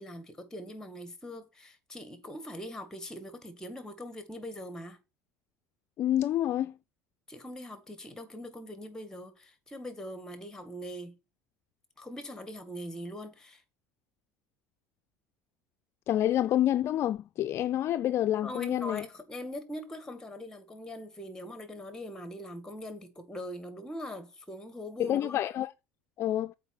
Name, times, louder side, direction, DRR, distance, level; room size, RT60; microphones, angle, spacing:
voice 1, 0.0-5.0 7.3-11.1 12.0-13.6 18.4-25.4, left 1 dB, 10° left, 2.0 m, -42 dB
voice 2, 6.0-6.7 16.1-19.0 25.0-25.7 26.2-26.5, left 12 dB, 45° left, 0.4 m, -28 dB
7.9 x 4.8 x 6.1 m
supercardioid pair, 110°, 6 cm